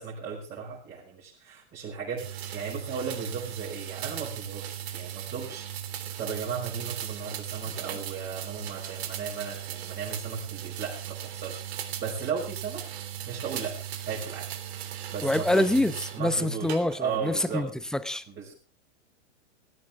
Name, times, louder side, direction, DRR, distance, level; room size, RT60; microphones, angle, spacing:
voice 1, 0.0-2.3 2.5-5.7 6.2-12.8 13.3-13.8 14.1-14.5 15.1-15.6 16.1-17.7 18.3-18.5, right 6 dB, 30° right, 5.9 m, -35 dB
sound 1, 2.2-16.2 16.7-17.2, right 10 dB, 60° right, 3.3 m, -37 dB
voice 2, 15.2-18.2, left 1 dB, ahead, 0.8 m, -26 dB
18.0 x 15.5 x 3.5 m
hypercardioid pair, 135°, 36 cm